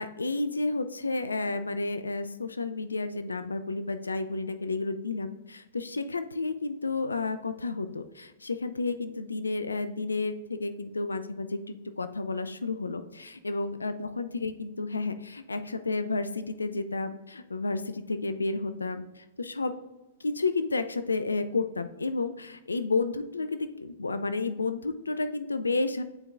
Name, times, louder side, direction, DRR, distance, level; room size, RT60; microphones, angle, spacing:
voice 1, 0.0-19.8 20.2-26.0, left 3 dB, 80° left, 10 dB, 0.4 m, -31 dB
8.7 x 4.5 x 2.5 m, 1.0 s
figure-of-eight pair, 105°, 0 cm